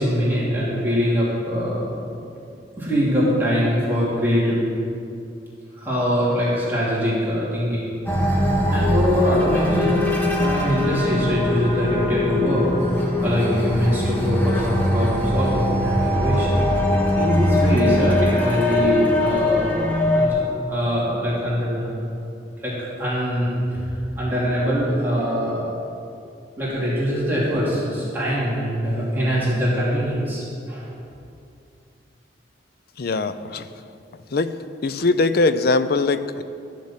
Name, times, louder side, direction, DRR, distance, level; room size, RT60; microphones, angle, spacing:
voice 1, 0.0-1.9 2.8-4.6 5.7-7.9 8.7-16.6 17.2-19.7 20.1-21.9 22.6-23.8 24.2-25.7 26.6-30.8, equal, 10° right, -9 dB, 3.0 m, -23 dB
sound 1, 8.1-20.3, left 1 dB, 10° left, 1.7 m, -21 dB
voice 2, 33.0-33.7 34.3-34.6 34.8-36.4, left 3 dB, 60° left, 12 dB, 0.6 m, -21 dB
13.5 x 7.4 x 7.4 m, 2.5 s
head